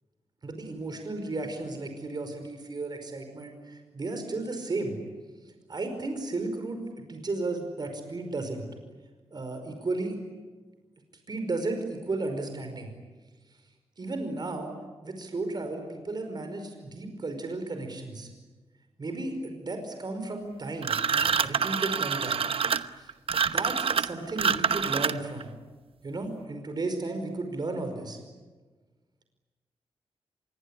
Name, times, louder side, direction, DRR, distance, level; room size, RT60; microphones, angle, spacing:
voice 1, 0.4-5.0 5.7-8.6 9.3-10.2 11.3-12.9 14.0-14.7 15.0-18.3 19.0-22.4 23.0-23.1 23.5-25.5 26.0-28.2, right 2 dB, 45° right, 6 dB, 5.2 m, -34 dB
sound 1, 20.8-25.4, right 6 dB, 65° right, 1.0 m, -26 dB
26.0 x 23.0 x 9.9 m, 1.3 s
wide cardioid pair, 105°, 10 cm